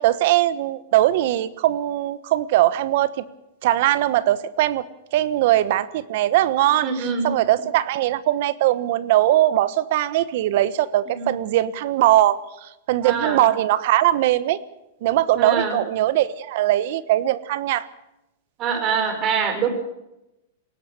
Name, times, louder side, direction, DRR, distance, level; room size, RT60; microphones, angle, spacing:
voice 1, 0.0-3.1 3.6-4.8 5.1-6.9 7.2-14.6 15.0-17.9, right 14 dB, 60° right, 17 dB, 1.2 m, -20 dB
voice 2, 6.8-7.3 11.1-11.4 13.0-13.4 15.4-15.8 18.6-19.7, right 6 dB, 35° right, 8 dB, 5.0 m, -24 dB
21.5 x 18.0 x 6.9 m, 0.91 s
hypercardioid pair, 135°, 0 cm